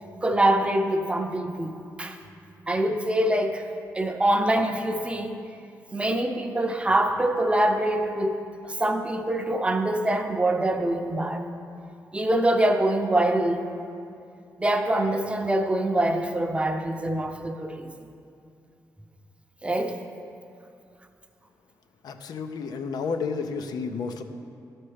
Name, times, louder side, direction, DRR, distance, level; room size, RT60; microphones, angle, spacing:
voice 1, 0.2-1.7 2.0-2.2 2.7-3.6 3.9-5.4 5.9-11.5 12.1-13.7 14.6-18.1 19.6-20.0, right 1 dB, 15° right, 5 dB, 0.6 m, -24 dB
voice 2, 22.0-24.2, left 5 dB, 80° left, 7 dB, 0.5 m, -31 dB
11.5 x 4.4 x 4.9 m, 2.5 s
cardioid pair, 90°, 7 cm